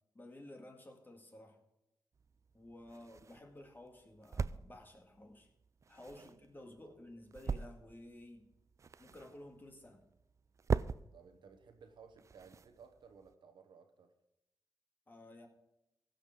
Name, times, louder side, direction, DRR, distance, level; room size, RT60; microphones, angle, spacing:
voice 1, 0.1-1.6 2.5-5.5 5.9-8.5 9.0-10.0 15.1-15.5, left 1 dB, 25° left, 3 dB, 2.1 m, -54 dB
sound 1, 2.1-13.3, right 5 dB, 40° right, 0.3 m, -43 dB
voice 2, 5.9-6.3 6.9-7.0 11.1-14.1, right 6 dB, 85° right, 6 dB, 1.3 m, -59 dB
16.0 x 5.9 x 5.1 m, 0.90 s
cardioid pair, 80°, 8 cm